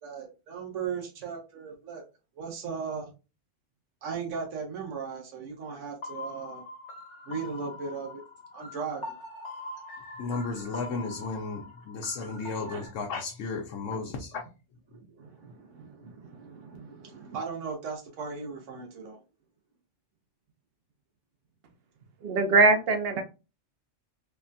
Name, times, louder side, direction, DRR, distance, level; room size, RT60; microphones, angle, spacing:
voice 1, 0.0-2.0 2.4-3.1 4.0-6.6 7.3-8.2 8.5-9.0 12.7-12.8 13.9-14.0 15.2-19.2 23.1-23.2, right 5 dB, 80° right, 1.1 m, -37 dB
sound 1, 6.0-12.9, left 2 dB, 65° left, 1.2 m, -43 dB
voice 2, 10.2-14.5, left 4 dB, 85° left, 0.9 m, -34 dB
voice 3, 22.2-23.2, right 3 dB, 60° right, 0.7 m, -21 dB
3.3 x 2.2 x 2.5 m
omnidirectional pair, 1.3 m